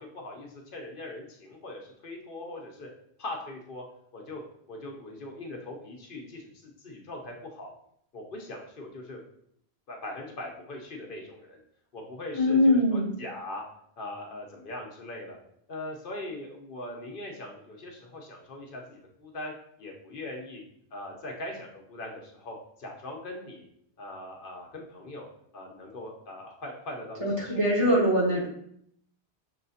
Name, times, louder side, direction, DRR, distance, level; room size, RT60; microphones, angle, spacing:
voice 1, 0.0-2.9 3.2-3.8 4.1-4.4 4.7-7.7 8.1-9.2 9.9-11.6 11.9-13.6 14.0-15.4 15.7-19.5 19.8-20.6 20.9-23.7 24.0-25.3 25.5-27.7, left 1 dB, 55° left, 0 dB, 1.0 m, -41 dB
voice 2, 12.3-13.1 27.2-28.5, left 1 dB, 30° right, -4 dB, 1.2 m, -22 dB
6.2 x 3.0 x 2.7 m, 0.69 s
omnidirectional pair, 1.1 m